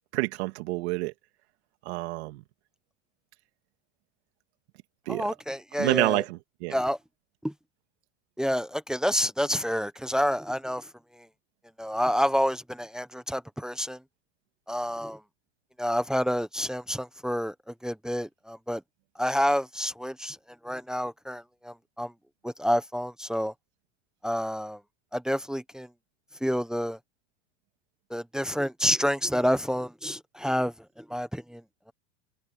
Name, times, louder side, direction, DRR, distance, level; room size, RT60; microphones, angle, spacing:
voice 1, 0.1-1.1 1.8-2.4 5.1-5.3 5.8-6.8, right 21 dB, 75° right, 2.2 m, -28 dB
voice 2, 5.1-6.2 6.7-7.0 7.4-7.5 8.4-11.3 11.8-14.0 14.7-15.2 15.8-18.8 19.1-20.4 20.6-22.1 22.4-23.5 24.2-24.8 25.1-25.9 26.4-27.0 28.1-31.6, equal, ahead, 1.1 m, -29 dB
supercardioid pair, 120°, 33 cm